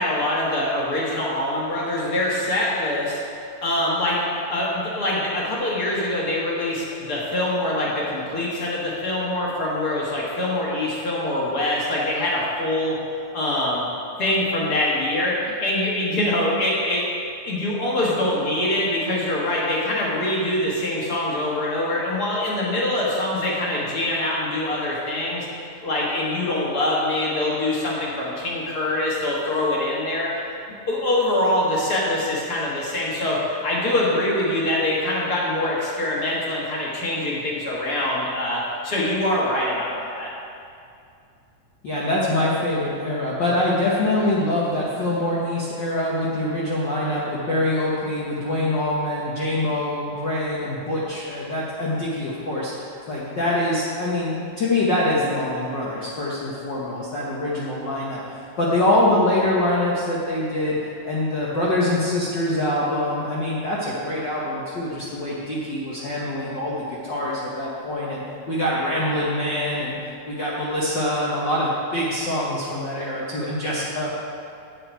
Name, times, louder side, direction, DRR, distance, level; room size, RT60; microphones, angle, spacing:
voice 1, 0.0-13.0 13.3-13.8 14.2-17.1 17.4-25.5 25.8-30.3 30.9-40.3, left 1 dB, 40° left, -5 dB, 1.7 m, -24 dB
voice 2, 41.8-52.7 53.1-60.8 61.0-69.9 70.2-74.1, left 1 dB, 65° left, -7 dB, 1.1 m, -24 dB
8.6 x 8.6 x 4.6 m, 2.5 s
omnidirectional pair, 3.6 m